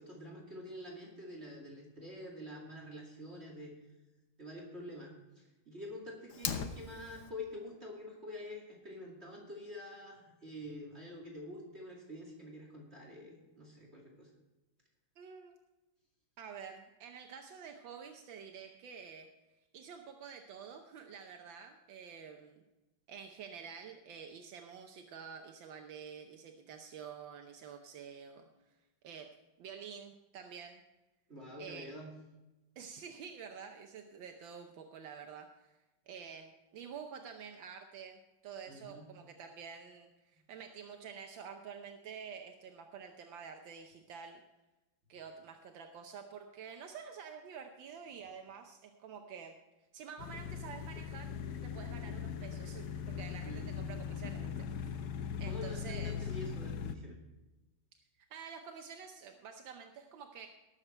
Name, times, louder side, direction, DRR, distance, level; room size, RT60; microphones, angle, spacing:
voice 1, 0.0-3.7 4.4-14.3 31.3-32.1 38.7-39.1 53.4-53.8 55.4-57.2, left 1 dB, 35° right, -1 dB, 2.6 m, -47 dB
Fire, 6.3-7.3, left 7 dB, 90° left, 1.8 m, -38 dB
voice 2, 15.2-15.6 16.4-19.3 19.7-22.6 23.1-28.5 29.0-29.3 29.6-30.8 31.6-31.9 32.8-35.8 36.1-44.4 45.1-49.5 49.9-51.3 51.6-54.9 55.4-56.4 58.2-60.5, right 6 dB, 80° right, 4 dB, 1.6 m, -49 dB
sound 1, 50.2-57.0, left 7 dB, 60° left, 1.2 m, -40 dB
19.0 x 7.4 x 4.4 m, 1.1 s
omnidirectional pair, 2.1 m